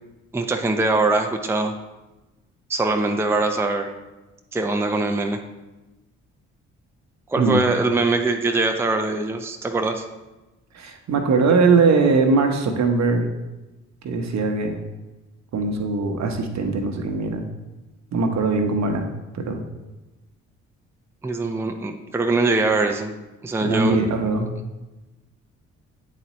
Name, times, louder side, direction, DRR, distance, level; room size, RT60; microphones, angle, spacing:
voice 1, 0.3-1.7 2.7-3.9 4.5-5.4 7.3-10.1 21.2-23.1 23.4-24.0, right 2 dB, 5° right, 4 dB, 0.6 m, -22 dB
voice 2, 10.7-13.3 14.0-14.8 15.5-17.4 18.1-19.1 19.3-19.6 23.6-24.5, right 4 dB, 50° right, 5 dB, 1.0 m, -21 dB
9.0 x 4.2 x 3.0 m, 1.1 s
hypercardioid pair, 45°, 35 cm